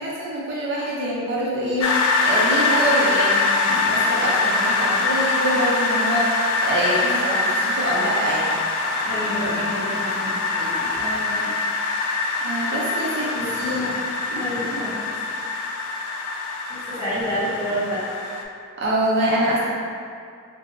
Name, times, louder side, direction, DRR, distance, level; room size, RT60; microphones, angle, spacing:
voice 1, 0.0-8.6 11.0-11.4 11.9-12.0 12.4-13.8 18.8-19.7, right 1 dB, 50° right, -6 dB, 0.5 m, -25 dB
sound 1, 1.8-18.4, left 3 dB, 80° left, 0.3 m, -23 dB
voice 2, 8.9-10.9 13.3-14.0 14.3-15.0 16.7-18.0, equal, 10° left, -13 dB, 1.2 m, -28 dB
2.6 x 2.2 x 3.8 m, 2.3 s
head